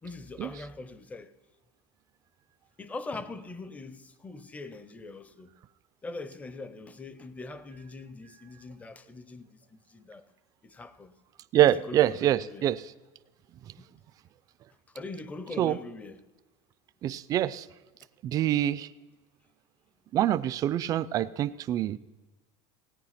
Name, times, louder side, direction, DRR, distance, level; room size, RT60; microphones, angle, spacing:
voice 1, 0.0-1.3 2.8-5.5 6.0-10.2 10.6-11.1 11.5-12.7 13.8-13.9 14.9-16.2, left 3 dB, 10° left, 0.6 m, -42 dB
voice 2, 11.5-12.8 15.6-15.8 17.0-17.6 18.2-18.9 20.1-22.0, right 12 dB, 30° right, 0.4 m, -25 dB
17.0 x 9.4 x 5.8 m
cardioid pair, 165°, 12 cm